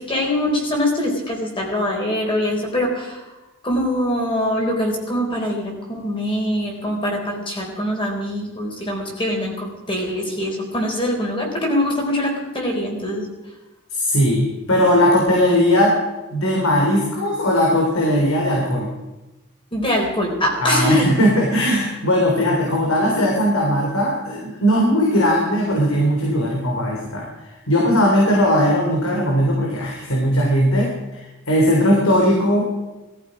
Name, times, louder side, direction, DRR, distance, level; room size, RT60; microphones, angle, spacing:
voice 1, 0.0-3.2 3.6-13.3 19.7-21.1, left 1 dB, 25° left, 0 dB, 4.1 m, -23 dB
voice 2, 13.9-16.0 16.3-18.9 20.6-27.2 27.7-31.2 31.5-32.7, equal, 80° left, -1 dB, 3.5 m, -18 dB
20.0 x 14.0 x 5.1 m, 1.1 s
head